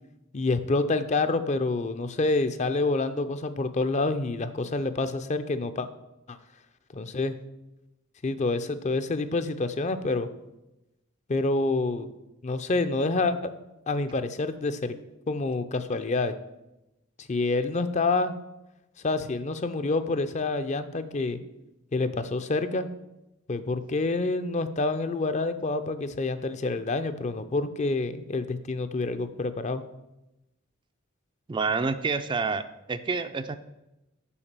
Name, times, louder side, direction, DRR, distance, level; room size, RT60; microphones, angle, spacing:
voice 1, 0.3-5.9 6.3-6.4 6.9-7.3 8.2-10.3 11.3-12.1 12.4-13.5 13.9-15.0 15.3-16.3 17.3-18.3 19.0-21.4 21.9-22.9 23.5-29.8, left 3 dB, 35° left, 11 dB, 0.5 m, -27 dB
voice 2, 31.5-33.6, right 4 dB, 25° right, 10 dB, 0.4 m, -28 dB
7.1 x 5.2 x 6.7 m, 0.92 s
head